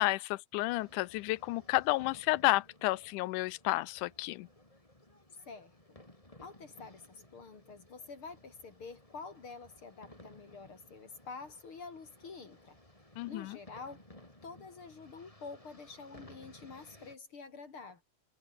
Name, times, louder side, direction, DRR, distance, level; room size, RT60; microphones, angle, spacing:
voice 1, 0.0-4.5 13.2-13.6, left 19 dB, 90° left, 2.1 m, -31 dB
sound 1, 0.7-17.2, left 1 dB, 10° left, 4.2 m, -58 dB
voice 2, 5.5-6.0 6.4-12.8 13.3-14.0 14.4-18.0, left 4 dB, 45° left, 3.1 m, -48 dB
omnidirectional pair, 3.6 m